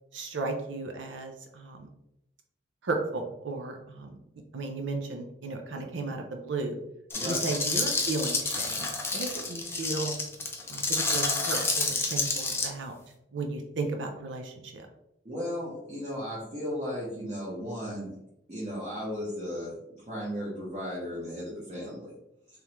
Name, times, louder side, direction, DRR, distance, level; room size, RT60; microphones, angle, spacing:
voice 1, 0.1-1.9 2.8-4.2 4.5-6.8 7.2-8.9 9.1-10.2 10.7-12.9 13.3-14.9, right 3 dB, 85° right, 3 dB, 0.5 m, -34 dB
sound 1, 7.1-12.7, left 3 dB, 15° left, 0.4 m, -29 dB
voice 2, 15.2-18.1 18.5-22.1, equal, 35° right, -7 dB, 1.1 m, -35 dB
3.5 x 3.2 x 3.0 m, 0.83 s
head